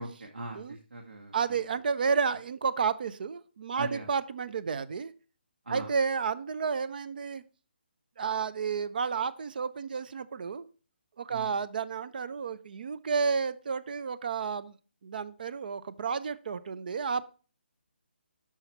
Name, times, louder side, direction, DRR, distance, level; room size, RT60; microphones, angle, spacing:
voice 1, 0.0-1.6 3.7-4.1 5.7-5.9 11.3-11.5, right 2 dB, 80° right, 2 dB, 1.2 m, -40 dB
voice 2, 1.3-5.1 5.7-7.4 8.2-10.7 11.2-14.8 15.0-17.2, right 5 dB, 50° right, 15 dB, 0.4 m, -31 dB
5.9 x 5.7 x 4.2 m, 0.37 s
figure-of-eight pair, 150°, 6 cm